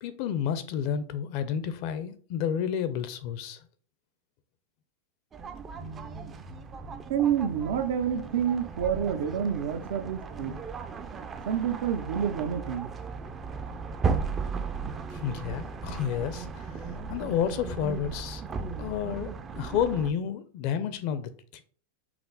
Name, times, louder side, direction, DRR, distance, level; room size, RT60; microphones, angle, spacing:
voice 1, 0.0-3.6 15.1-18.4 18.8-21.6, left 8 dB, 55° left, 0.5 m, -31 dB
sound 1, 5.3-20.1, right 5 dB, 25° right, 0.4 m, -36 dB
sound 2, 5.7-9.1 9.6-9.7, right 3 dB, 90° right, 1.4 m, -44 dB
voice 2, 7.1-10.5 11.5-12.9, right 8 dB, 70° right, 0.6 m, -28 dB
5.8 x 2.0 x 3.9 m
hypercardioid pair, 125°, 0 cm